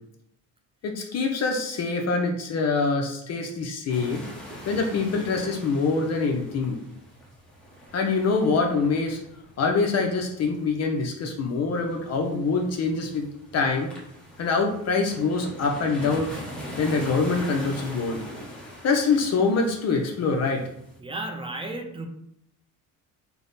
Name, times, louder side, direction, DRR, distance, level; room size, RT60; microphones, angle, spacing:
voice 1, 0.8-4.2 4.7-6.8 7.9-9.2 9.6-13.3 13.5-13.9 14.4-16.3 16.8-18.2 18.8-20.6, left 4 dB, 45° left, 2 dB, 0.6 m, -25 dB
sound 1, 3.9-21.0, equal, 5° left, 0.9 m, -42 dB
voice 2, 21.0-22.1, right 2 dB, 15° right, 4 dB, 0.4 m, -33 dB
3.3 x 2.1 x 4.0 m, 0.74 s
cardioid pair, 120°, 37 cm